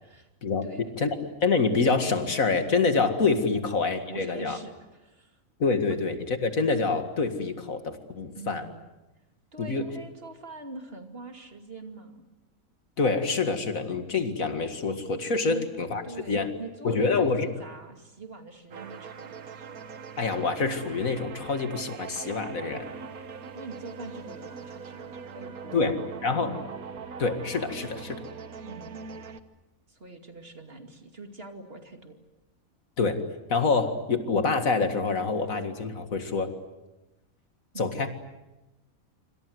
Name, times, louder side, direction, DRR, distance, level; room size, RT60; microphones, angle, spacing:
voice 1, 0.6-1.2 3.5-3.6 4.1-5.4 8.4-8.8 9.5-12.3 15.5-15.6 16.0-19.7 23.5-26.0 28.6-29.1 29.9-32.2 37.7-38.0, right 3 dB, 40° right, 5 dB, 2.8 m, -43 dB
voice 2, 1.4-4.6 5.6-8.6 9.6-9.9 13.0-16.0 16.3-16.5 16.8-17.5 20.2-22.8 25.7-26.6 27.2-28.2 33.0-33.2 33.5-36.5 37.8-38.1, left 4 dB, 70° left, 7 dB, 2.4 m, -26 dB
sound 1, 18.7-29.4, right 5 dB, 80° right, 1.7 m, -41 dB
27.0 x 26.0 x 7.9 m, 1.0 s
omnidirectional pair, 1.5 m